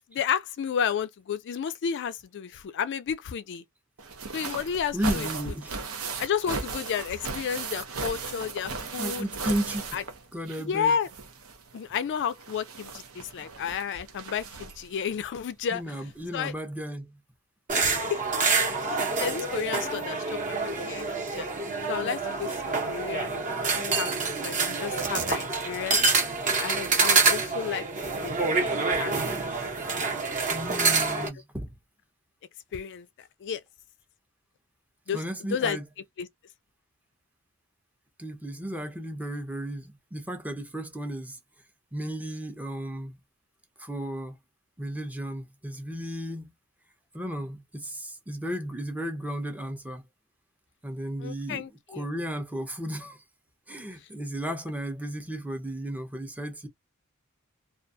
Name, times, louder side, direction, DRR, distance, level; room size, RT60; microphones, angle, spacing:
voice 1, 0.0-3.6 4.3-5.3 6.2-9.3 9.9-10.0 10.6-11.1 11.7-15.8 16.3-16.5 17.8-18.2 18.9-21.5 21.9-23.4 23.7-26.1 26.6-27.8 28.2-28.3 28.9-29.4 32.7-33.1 33.4-33.6 35.1-35.2 35.5-35.8 36.2-36.3 51.2-52.1, left 7 dB, 55° left, 0.3 m, -32 dB
sound 1, 4.0-10.8 11.0-15.0 16.1-16.2 16.5-16.6, right 4 dB, 65° right, 0.7 m, -37 dB
voice 2, 4.9-5.8 8.7-10.0 10.3-10.9 15.7-17.2 30.5-31.7 35.1-35.8 38.2-41.4 41.9-43.2 43.8-44.4 44.8-46.5 47.1-50.1 50.8-51.6 51.9-53.2 53.7-56.7, equal, 5° right, 0.5 m, -34 dB
sound 2, 17.7-31.3, right 4 dB, 35° right, 0.8 m, -27 dB
2.3 x 2.2 x 2.5 m
head